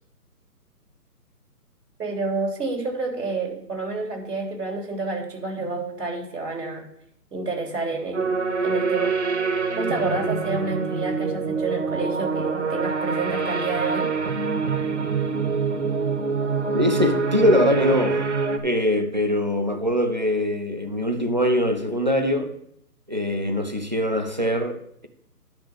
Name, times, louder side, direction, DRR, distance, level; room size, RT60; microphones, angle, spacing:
voice 1, 2.0-6.9 7.3-8.4 8.6-9.2 9.8-14.1, right 3 dB, 80° right, 3.7 m, -29 dB
sound 1, 8.1-18.6, right 5 dB, 45° right, 1.0 m, -25 dB
voice 2, 16.7-18.2 18.6-22.5 23.1-25.1, left 1 dB, 30° right, 0.6 m, -22 dB
10.5 x 5.8 x 6.4 m
hypercardioid pair, 175°, 47 cm